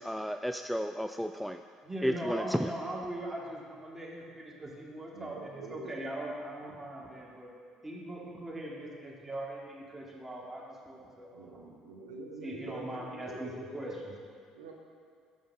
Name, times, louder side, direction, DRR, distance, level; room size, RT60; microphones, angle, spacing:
voice 1, 0.0-1.6 2.0-2.7, equal, ahead, 6 dB, 0.3 m, -32 dB
voice 2, 1.8-7.5 7.8-11.6 12.4-14.1, right 1 dB, 15° right, -4 dB, 2.5 m, -40 dB
voice 3, 5.1-6.0 11.3-13.7 14.5-14.7, right 2 dB, 85° right, 0 dB, 0.9 m, -45 dB
14.5 x 5.3 x 3.7 m, 2.2 s
hypercardioid pair, 60°, 2 cm